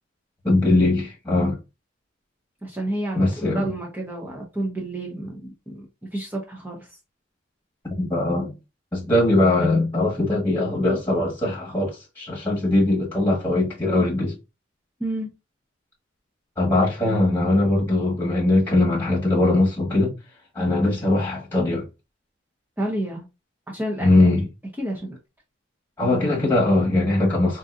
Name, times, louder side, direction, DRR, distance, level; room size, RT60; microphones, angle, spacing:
voice 1, 0.4-1.6 3.1-3.7 7.8-8.5 8.9-14.4 16.6-20.1 20.5-21.9 24.0-24.5 26.0-27.6, left 2 dB, 10° left, 1.4 m, -21 dB
voice 2, 2.6-5.9 6.1-6.9 15.0-15.3 22.8-23.2 23.7-24.1 24.8-25.2, right 1 dB, 10° right, 0.7 m, -30 dB
3.8 x 2.6 x 2.4 m
head